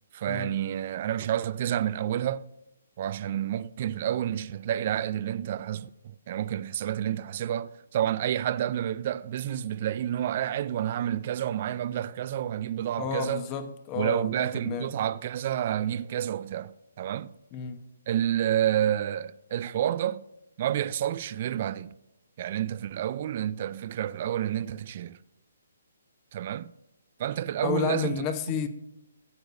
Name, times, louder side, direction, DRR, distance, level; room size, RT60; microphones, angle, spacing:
voice 1, 0.1-2.5 3.0-13.4 13.9-17.3 18.1-20.2 20.6-21.9 22.4-25.2 26.3-26.7 27.2-28.3, right 11 dB, 45° right, 0.4 m, -29 dB
voice 2, 13.0-14.9 17.5-17.9 27.6-28.7, left 7 dB, 25° left, 1.0 m, -31 dB
16.0 x 7.8 x 2.7 m
hypercardioid pair, 145°, 0 cm